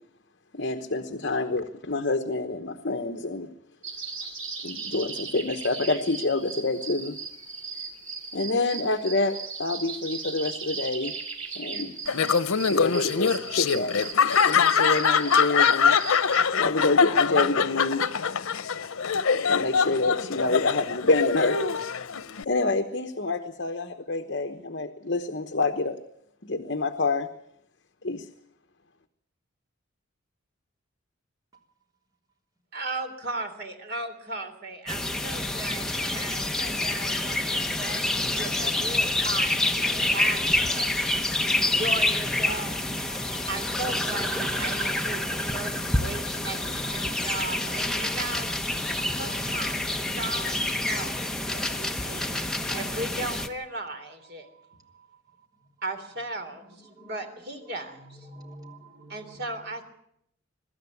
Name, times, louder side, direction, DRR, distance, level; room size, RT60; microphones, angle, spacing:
voice 1, 0.5-3.5 4.6-7.1 8.3-11.1 11.5-11.9 12.7-13.9 14.5-16.0 16.5-18.1 19.5-21.6 22.4-26.0 26.4-27.3 28.0-28.3, left 2 dB, 55° left, 1.1 m, -27 dB
sound 1, 3.8-16.4, right 5 dB, 75° right, 4.7 m, -38 dB
Laughter, 12.1-22.4, left 6 dB, 90° left, 0.8 m, -23 dB
voice 2, 32.7-40.4 40.7-42.7 43.5-48.5 49.1-54.5 55.8-58.3 59.1-59.8, right 2 dB, 50° right, 3.4 m, -37 dB
sound 2, 34.9-53.5, left 1 dB, 5° left, 1.0 m, -27 dB
voice 3, 41.4-41.7 43.1-43.4 44.6-44.9 48.0-48.1 48.9-49.2 57.0-57.1 58.3-59.1, right 3 dB, 20° right, 3.3 m, -45 dB
23.5 x 13.0 x 9.7 m
head